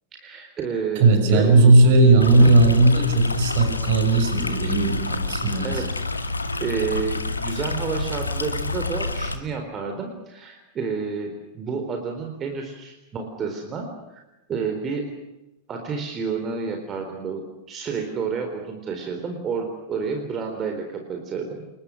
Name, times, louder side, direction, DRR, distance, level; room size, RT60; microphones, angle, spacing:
voice 1, 0.2-1.5 2.4-2.5 5.6-6.0 6.6-14.2 14.5-15.1 15.7-21.6, right 5 dB, 25° right, 4 dB, 4.2 m, -30 dB
voice 2, 0.9-5.8, right 2 dB, 50° right, 7 dB, 6.2 m, -17 dB
Stream, 2.2-9.3, left 3 dB, 80° left, 2.1 m, -28 dB
29.0 x 22.0 x 6.5 m, 0.98 s
figure-of-eight pair, 90°, 0 cm